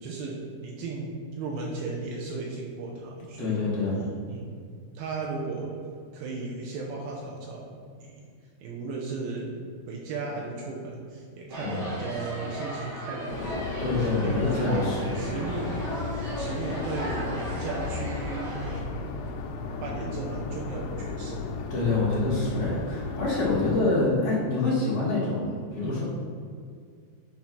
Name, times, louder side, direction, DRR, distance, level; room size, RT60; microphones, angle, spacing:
voice 1, 0.0-3.6 4.3-5.8 6.1-8.3 8.6-9.5 9.9-13.6 14.2-15.7 16.4-19.1 19.8-21.5 25.8-26.0, right 3 dB, 75° right, -2 dB, 2.5 m, -35 dB
voice 2, 3.4-4.0 11.7-11.9 13.8-15.2 21.7-26.0, left 3 dB, 55° left, -7 dB, 2.8 m, -26 dB
sound 1, 11.5-18.8, equal, 40° right, 1.7 m, -36 dB
sound 2, 13.3-23.8, left 4 dB, 85° left, 2.8 m, -35 dB
7.5 x 4.5 x 5.5 m, 2.2 s
omnidirectional pair, 4.9 m